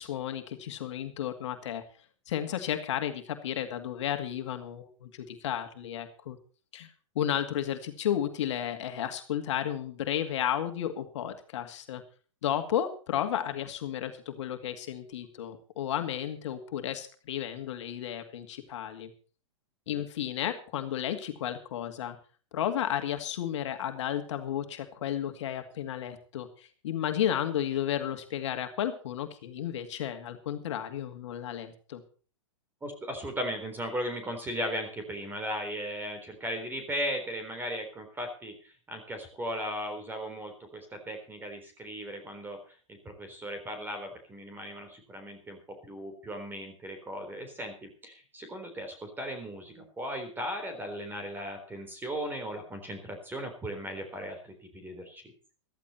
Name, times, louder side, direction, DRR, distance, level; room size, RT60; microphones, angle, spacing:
voice 1, 0.0-1.8 2.3-6.4 6.7-6.9 7.2-12.0 12.4-19.1 19.9-22.2 22.5-32.0, left 10 dB, 65° left, 6 dB, 2.2 m, -33 dB
voice 2, 32.8-42.6 42.9-55.2, equal, 10° right, 6 dB, 3.9 m, -37 dB
14.5 x 14.0 x 4.3 m, 0.40 s
hypercardioid pair, 115°, 16 cm